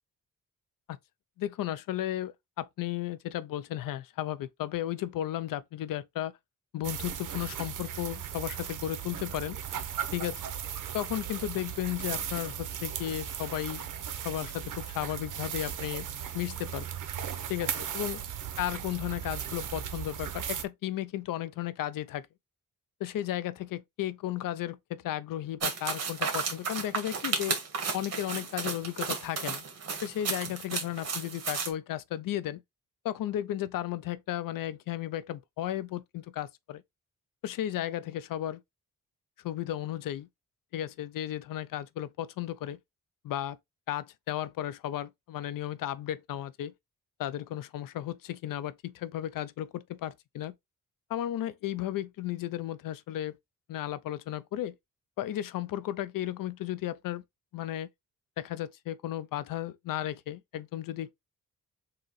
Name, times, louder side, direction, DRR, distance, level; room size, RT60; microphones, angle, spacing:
voice 1, 1.4-6.3 6.7-9.6 10.1-10.4 10.9-13.8 14.2-16.1 16.3-16.9 17.5-18.2 18.6-22.3 23.0-27.6 27.9-29.6 30.0-32.6 33.0-36.8 37.4-38.6 39.4-40.3 40.7-42.8 43.2-43.6 43.9-46.7 47.2-50.5 51.1-53.4 53.7-54.7 55.2-57.2 57.5-57.9 58.4-61.1, left 12 dB, 85° left, 0.5 m, -34 dB
sound 1, 6.8-20.6, right 9 dB, 65° right, 0.8 m, -37 dB
sound 2, 25.6-31.7, right 5 dB, 50° right, 1.5 m, -33 dB
3.7 x 2.8 x 3.9 m
cardioid pair, 110°, 33 cm